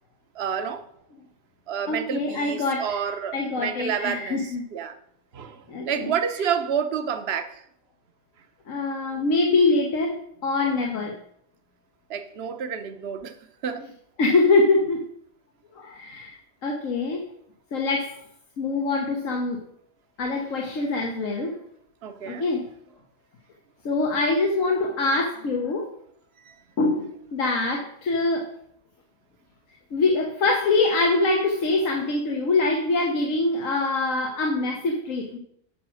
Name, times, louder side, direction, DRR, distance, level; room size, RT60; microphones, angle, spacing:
voice 1, 0.3-0.8 1.7-5.0 5.3-7.6 10.6-10.8 12.1-13.4 13.6-13.9 22.0-22.5 26.4-26.6, right 7 dB, 55° right, 9 dB, 1.0 m, -29 dB
voice 2, 1.9-3.0 3.3-4.6 5.7-6.1 8.7-11.1 14.2-15.0 15.7-16.3 16.6-17.2 17.7-18.1 18.6-19.6 20.2-21.5 22.2-22.6 23.8-25.9 26.8-28.5 29.9-35.4, left 3 dB, 90° left, 2 dB, 1.5 m, -24 dB
8.9 x 5.9 x 6.3 m, 0.70 s
omnidirectional pair, 1.3 m